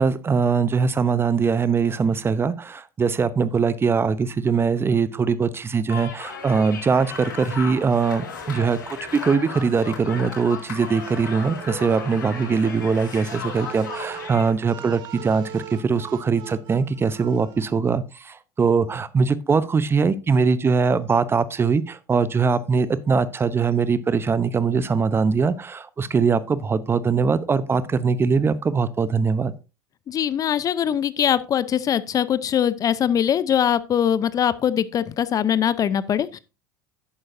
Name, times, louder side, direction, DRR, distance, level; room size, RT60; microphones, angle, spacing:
voice 1, 0.0-29.5, right 5 dB, 20° right, 0.8 m, -22 dB
sound 1, 5.9-14.5, left 5 dB, 80° left, 3.9 m, -35 dB
sound 2, 11.0-17.7, right 10 dB, 45° right, 1.6 m, -42 dB
voice 2, 30.1-36.4, left 9 dB, 35° left, 0.6 m, -22 dB
11.0 x 8.8 x 2.7 m
hypercardioid pair, 80°, 10 cm